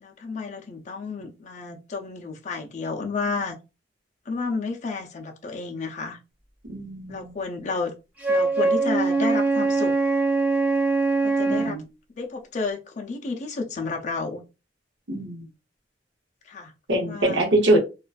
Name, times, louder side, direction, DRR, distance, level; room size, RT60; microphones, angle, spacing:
voice 1, 0.0-3.6 4.3-6.2 7.1-7.9 8.3-9.9 11.2-11.8 12.1-14.4 16.5-17.5, left 4 dB, 40° left, 0.5 m, -31 dB
voice 2, 6.7-7.3 11.5-11.8 15.1-15.5 16.9-17.8, right 1 dB, 80° right, 0.8 m, -23 dB
Wind instrument woodwind instrument, 8.2-11.8, right 3 dB, 10° right, 0.6 m, -22 dB
2.4 x 2.2 x 2.3 m
head